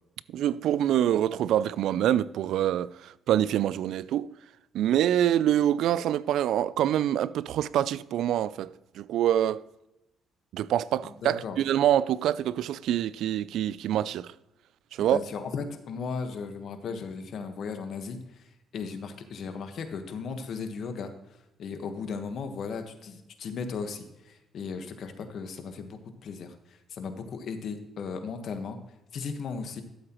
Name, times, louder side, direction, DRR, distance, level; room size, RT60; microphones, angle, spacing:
voice 1, 0.3-4.3 4.7-9.6 10.5-14.3 15.0-15.2, right 11 dB, 80° right, 0.3 m, -25 dB
voice 2, 11.2-11.6 15.1-18.4 18.7-21.1 21.6-28.8 29.1-29.8, left 5 dB, 65° left, 1.3 m, -36 dB
12.5 x 7.9 x 3.0 m
cardioid pair, 90°, 0 cm